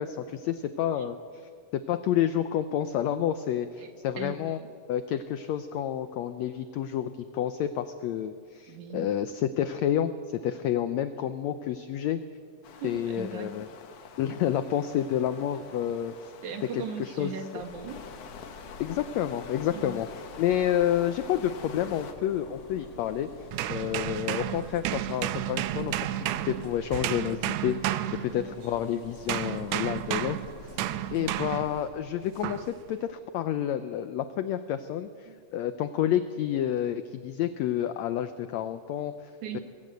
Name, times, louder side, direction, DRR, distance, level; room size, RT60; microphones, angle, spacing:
voice 1, 0.0-1.4 1.7-4.6 4.9-12.2 12.8-13.7 14.2-16.3 16.7-17.3 18.8-20.1 20.4-23.3 23.7-30.8 31.1-39.6, left 10 dB, 80° left, 11 dB, 1.5 m, -29 dB
voice 2, 4.2-4.7 8.7-9.1 12.6-13.6 16.4-18.0 19.7-20.0 28.2-28.5 31.2-31.5 35.3-35.4 39.4-39.6, right 5 dB, 65° right, 6 dB, 2.9 m, -39 dB
sound 1, 12.6-22.1, left 6 dB, 60° left, 2.1 m, -47 dB
sound 2, 17.6-31.9, left 3 dB, 40° left, 2.0 m, -48 dB
sound 3, 23.5-28.8 29.3-31.8 32.4-32.7, right 13 dB, 90° right, 1.6 m, -32 dB
22.5 x 15.5 x 7.9 m, 2.2 s
omnidirectional pair, 3.9 m